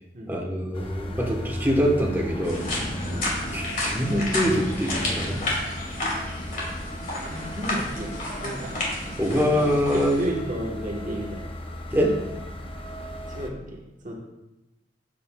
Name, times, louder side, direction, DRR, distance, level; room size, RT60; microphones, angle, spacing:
voice 1, 0.3-2.7 3.5-5.5 9.2-10.2 11.9-12.2, equal, 10° right, -1 dB, 1.1 m, -24 dB
sound 1, 0.7-13.5, left 1 dB, 30° left, 0.7 m, -36 dB
sound 2, 2.4-10.3, left 1 dB, 50° left, 2.4 m, -31 dB
voice 2, 7.2-8.7 9.5-11.5 13.3-14.1, equal, 45° right, -2 dB, 1.3 m, -33 dB
9.1 x 7.5 x 2.3 m, 0.96 s
head